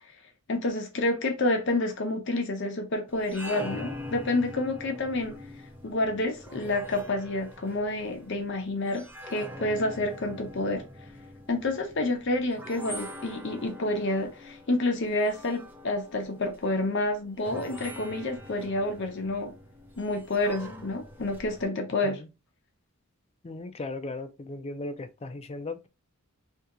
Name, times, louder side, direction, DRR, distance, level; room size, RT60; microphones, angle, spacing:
voice 1, 0.5-5.4 5.8-9.1 9.3-10.8 11.5-19.5 20.0-22.2, left 2 dB, 55° left, 0.7 m, -29 dB
sound 1, 3.1-21.7, left 1 dB, 10° right, 0.7 m, -44 dB
voice 2, 23.4-25.9, left 2 dB, 30° left, 0.4 m, -37 dB
2.8 x 2.8 x 3.5 m
head